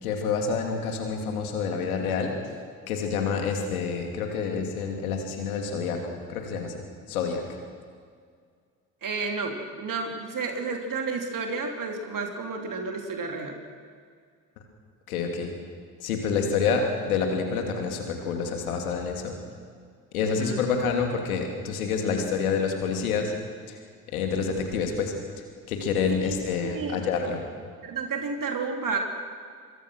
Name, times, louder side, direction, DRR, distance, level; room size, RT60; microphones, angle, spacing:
voice 1, 0.0-2.3 2.9-7.4 15.1-15.5 16.0-19.4 20.1-23.3 23.7-23.8 24.1-25.1 25.7-27.4, left 5 dB, 85° left, 3 dB, 2.9 m, -28 dB
voice 2, 9.0-13.6 20.2-20.6 26.1-27.1 27.8-29.0, right 4 dB, 50° right, 3 dB, 3.0 m, -31 dB
24.5 x 22.5 x 6.3 m, 2.1 s
hypercardioid pair, 45°, 42 cm